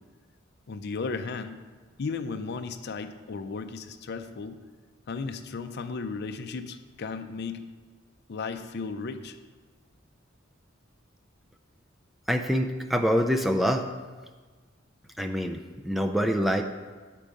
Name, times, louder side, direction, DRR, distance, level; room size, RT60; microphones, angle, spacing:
voice 1, 0.7-1.6 2.0-4.6 5.1-7.7 8.3-9.4, left 4 dB, 55° left, 9 dB, 0.5 m, -35 dB
voice 2, 12.3-13.8 15.2-16.6, equal, ahead, 4 dB, 0.3 m, -25 dB
8.5 x 4.6 x 5.2 m, 1.4 s
head